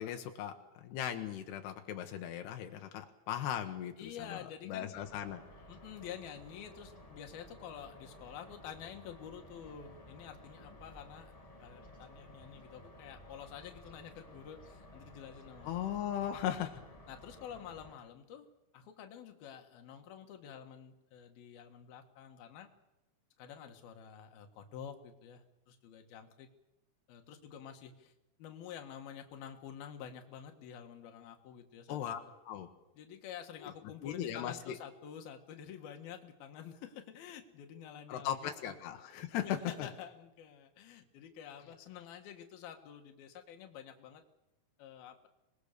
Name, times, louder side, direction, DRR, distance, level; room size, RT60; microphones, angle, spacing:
voice 1, 0.0-5.4 15.6-16.8 31.9-32.2 32.5-32.7 33.6-33.7 34.0-34.8 38.1-39.9, left 10 dB, 85° left, 6 dB, 3.4 m, -38 dB
voice 2, 4.0-4.9 5.7-11.3 11.6-15.9 16.4-16.7 17.1-22.7 23.4-26.5 27.1-28.1 28.4-32.0 32.9-38.8 39.1-44.2 44.8-45.3, left 8 dB, 70° left, 5 dB, 3.5 m, -49 dB
sound 1, 4.9-17.9, left 1 dB, 30° left, 0.6 m, -55 dB
26.5 x 20.5 x 6.8 m, 0.95 s
omnidirectional pair, 4.6 m